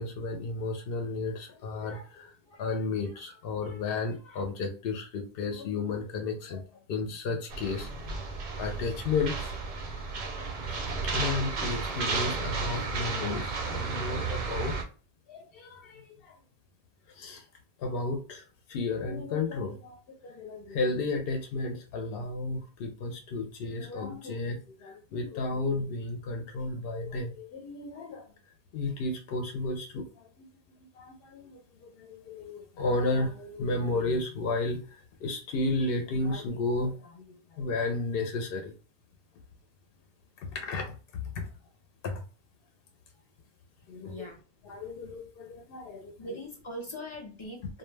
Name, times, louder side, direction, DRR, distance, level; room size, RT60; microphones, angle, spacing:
voice 1, 0.0-6.6 6.9-8.2 8.6-10.1 10.4-10.5 11.0-14.8 15.3-16.4 17.1-17.5 17.8-28.3 28.7-30.5 30.9-38.7 40.4-41.5 42.0-42.1 43.9-44.2 44.6-46.4, left 3 dB, 70° left, 4 dB, 0.7 m, -33 dB
sound 1, 7.5-14.8, right 4 dB, 55° right, 0.6 m, -33 dB
voice 2, 44.0-44.4 46.2-47.8, equal, 50° left, 3 dB, 0.3 m, -41 dB
2.2 x 2.1 x 3.2 m, 0.36 s
omnidirectional pair, 1.1 m